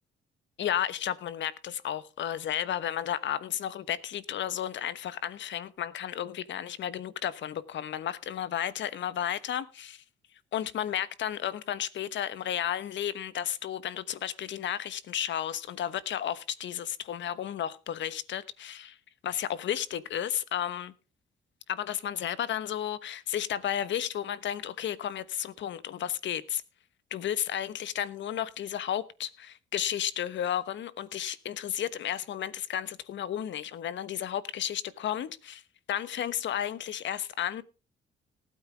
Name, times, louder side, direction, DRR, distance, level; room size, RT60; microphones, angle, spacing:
voice 1, 0.6-10.0 10.5-19.0 19.2-20.9 21.7-26.6 27.1-35.6 35.9-37.6, left 10 dB, 70° left, 1.2 m, -33 dB
19.0 x 8.9 x 3.4 m
cardioid pair, 90°, 20 cm